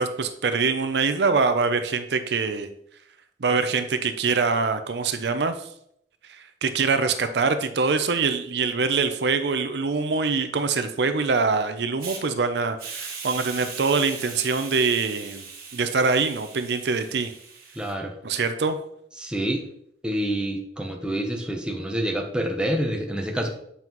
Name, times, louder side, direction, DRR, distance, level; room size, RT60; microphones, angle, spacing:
voice 1, 0.0-2.7 3.4-5.7 6.3-15.5 15.7-17.3 18.2-18.8, right 4 dB, 70° right, 9 dB, 0.5 m, -24 dB
Hiss, 12.0-12.2 12.8-17.9, right 5 dB, 55° right, 1.4 m, -39 dB
voice 2, 17.8-18.1 19.2-19.6 20.0-23.5, right 1 dB, 5° right, 1 dB, 0.7 m, -27 dB
7.8 x 5.5 x 3.0 m, 0.72 s
head